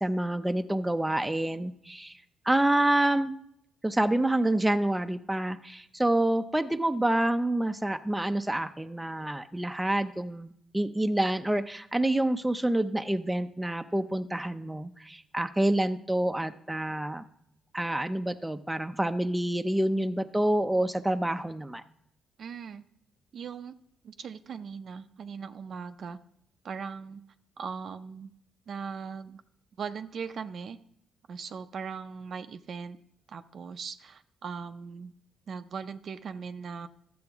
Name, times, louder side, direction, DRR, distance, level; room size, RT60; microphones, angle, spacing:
voice 1, 0.0-2.2 2.5-3.3 3.8-17.2 17.7-21.8, right 1 dB, 10° right, 8 dB, 0.5 m, -27 dB
voice 2, 22.4-22.8 23.3-23.7 24.0-26.2 26.6-27.2 27.6-28.3 28.7-29.4 29.8-30.8 31.3-33.0 33.3-35.1 35.5-36.9, right 6 dB, 55° right, 10 dB, 0.5 m, -39 dB
12.0 x 7.7 x 3.5 m, 0.71 s
cardioid pair, 90°, 0 cm